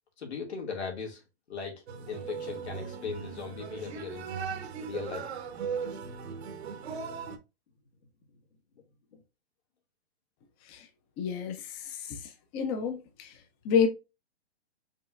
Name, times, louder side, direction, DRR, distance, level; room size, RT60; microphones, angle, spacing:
voice 1, 0.2-1.2 1.5-4.3 4.8-5.3, left 5 dB, 85° left, 2.3 m, -38 dB
sound 1, 1.9-7.4, right 6 dB, 75° right, 1.0 m, -38 dB
voice 2, 11.2-12.2 12.5-13.3 13.6-13.9, left 7 dB, 25° left, 0.7 m, -29 dB
5.3 x 3.1 x 2.5 m
hypercardioid pair, 145°, 32 cm